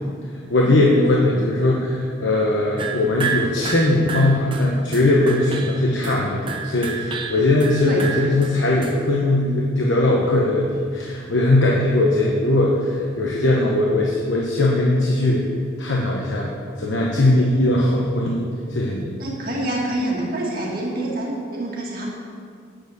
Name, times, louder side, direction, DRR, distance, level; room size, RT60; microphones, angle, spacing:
voice 1, 0.5-15.4 15.8-16.5 16.8-18.4 18.7-19.2, left 2 dB, 65° left, -3 dB, 1.1 m, -19 dB
sound 1, 2.8-9.0, right 5 dB, 25° right, 0.7 m, -30 dB
voice 2, 19.2-22.2, right 1 dB, 45° right, -3 dB, 2.0 m, -26 dB
7.9 x 6.8 x 8.1 m, 2.2 s
head